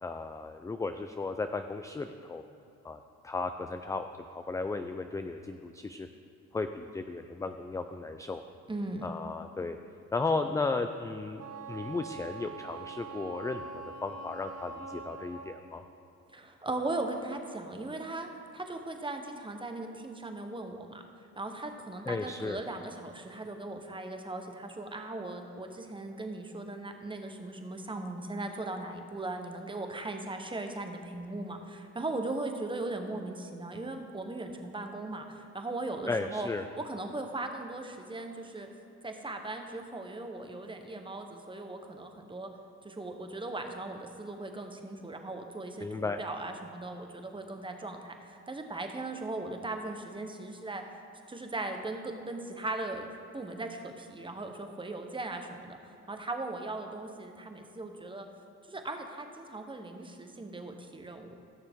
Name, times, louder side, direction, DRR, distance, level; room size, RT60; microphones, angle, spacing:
voice 1, 0.0-2.4 2.8-6.1 6.5-8.4 9.0-9.8 10.1-15.8 22.1-22.6 36.1-36.7 45.8-46.2, left 3 dB, 10° left, 7 dB, 0.3 m, -35 dB
voice 2, 8.7-9.1 16.3-18.3 18.5-21.0 21.4-36.5 36.8-38.7 39.0-42.5 42.8-50.8 51.3-53.1 53.3-55.8 56.1-58.3 58.7-61.4, right 2 dB, 15° right, 5 dB, 1.0 m, -38 dB
Wind instrument woodwind instrument, 11.4-15.7, right 4 dB, 55° right, 1.0 m, -43 dB
16.0 x 6.7 x 3.6 m, 2.9 s
cardioid pair, 90°, 30 cm